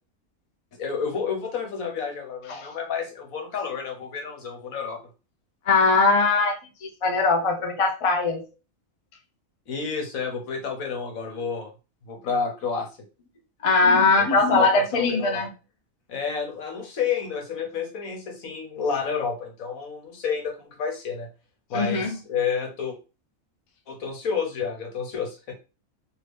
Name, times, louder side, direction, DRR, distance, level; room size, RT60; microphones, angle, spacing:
voice 1, 0.8-5.0 9.7-11.7 12.1-12.9 14.1-15.5 16.1-21.3 21.7-23.0 23.9-25.5, left 6 dB, 80° left, 1.3 m, -30 dB
voice 2, 5.7-8.5 13.6-15.5 21.7-22.2, left 3 dB, 40° left, 0.5 m, -21 dB
2.8 x 2.7 x 3.3 m
omnidirectional pair, 1.4 m